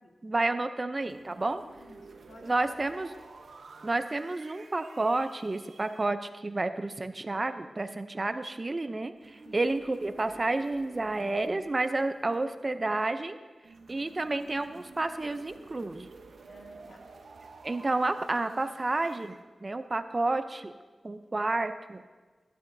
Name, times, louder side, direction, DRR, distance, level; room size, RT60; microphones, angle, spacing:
voice 1, 0.2-1.6 2.4-3.1 3.8-13.4 13.9-16.1 17.6-20.7 21.0-22.0, right 2 dB, 35° right, 9 dB, 0.6 m, -30 dB
sound 1, 1.0-6.1 9.2-12.9 13.6-19.4, right 4 dB, 85° right, 0.8 m, -52 dB
voice 2, 1.7-2.9 9.4-9.6 16.5-17.0, left 1 dB, 70° left, 2 dB, 1.4 m, -54 dB
14.5 x 12.0 x 2.7 m, 1.3 s
wide cardioid pair, 80°, 0 cm